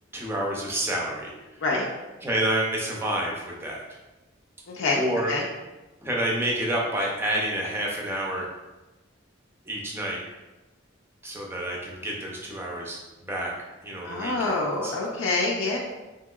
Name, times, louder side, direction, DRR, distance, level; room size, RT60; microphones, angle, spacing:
voice 1, 0.1-1.3 2.2-3.8 5.0-5.3 6.0-8.5 9.7-10.2 11.2-13.5 13.8-14.9, right 1 dB, 10° right, -2 dB, 0.4 m, -29 dB
voice 2, 4.7-5.0 5.3-5.4 14.0-15.8, left 3 dB, 90° left, -3 dB, 0.4 m, -26 dB
2.9 x 2.7 x 2.3 m, 1.1 s
head